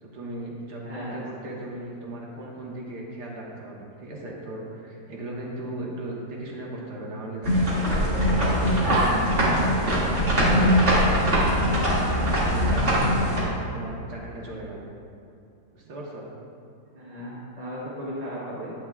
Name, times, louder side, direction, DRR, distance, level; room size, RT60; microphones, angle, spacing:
voice 1, 0.0-8.1 8.6-11.8 12.4-14.9 15.7-16.3, right 1 dB, 90° right, -3 dB, 1.9 m, -37 dB
voice 2, 0.8-1.6 16.9-18.7, equal, 25° right, -7 dB, 1.5 m, -36 dB
sound 1, 7.4-13.4, equal, 45° right, 2.6 m, -21 dB
11.5 x 8.8 x 2.4 m, 2.5 s
omnidirectional pair, 1.7 m